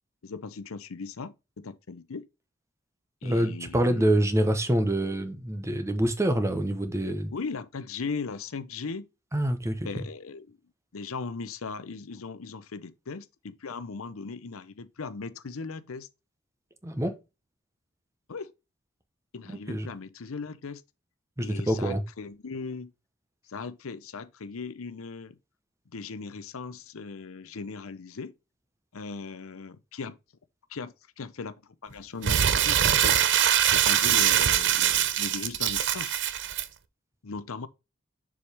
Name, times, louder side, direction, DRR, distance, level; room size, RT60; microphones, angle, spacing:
voice 1, 0.2-2.3 3.2-4.1 7.3-9.1 9.8-10.6 10.9-16.1 18.3-18.5 19.3-20.8 21.4-22.9 23.5-25.4 25.9-28.3 28.9-30.2 30.7-31.5 31.8-33.3 33.7-36.2 37.2-37.7, left 4 dB, 90° left, 0.7 m, -38 dB
voice 2, 3.2-7.3 9.3-9.9 16.8-17.2 19.5-19.9 21.4-22.0, right 1 dB, 15° right, 0.9 m, -26 dB
Crumpling crinkling, 32.2-36.6, right 10 dB, 60° right, 0.6 m, -23 dB
7.0 x 4.9 x 3.4 m
head